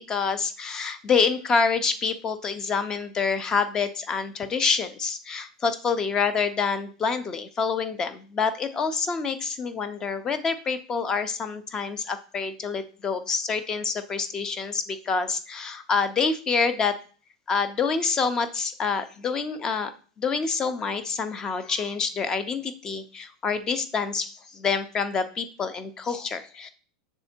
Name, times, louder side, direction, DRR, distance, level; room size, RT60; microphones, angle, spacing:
voice 1, 0.0-16.9 17.5-19.9 20.2-26.7, left 5 dB, 15° left, 12 dB, 0.5 m, -27 dB
6.8 x 3.5 x 4.3 m, 0.40 s
supercardioid pair, 160°, 4 cm